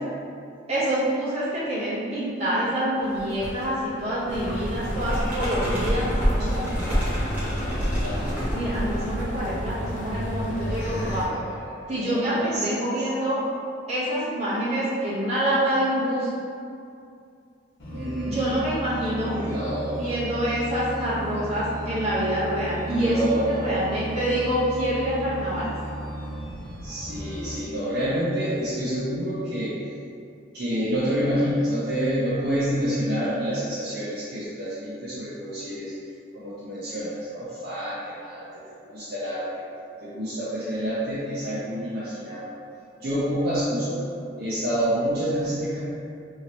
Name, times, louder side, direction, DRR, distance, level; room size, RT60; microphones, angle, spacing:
voice 1, 0.7-7.0 8.5-11.3 11.9-13.4 13.9-16.3 18.3-19.4 20.0-25.7, equal, 35° right, -10 dB, 1.0 m, -26 dB
sound 1, 3.0-3.7 4.0-9.2, equal, 10° right, 0.8 m, -28 dB
sound 2, 4.3-11.3, equal, 40° left, 0.4 m, -31 dB
voice 2, 8.0-8.4 10.8-12.8 17.9-18.4 19.2-20.3 22.9-23.8 26.8-29.8 30.5-35.9 36.3-39.7 40.0-42.4 43.0-44.0 44.4-45.8, equal, 55° right, -10 dB, 0.5 m, -28 dB
sound 3, 17.8-27.6, right 1 dB, 75° left, 0.9 m, -35 dB
3.0 x 2.8 x 2.9 m, 2.4 s
head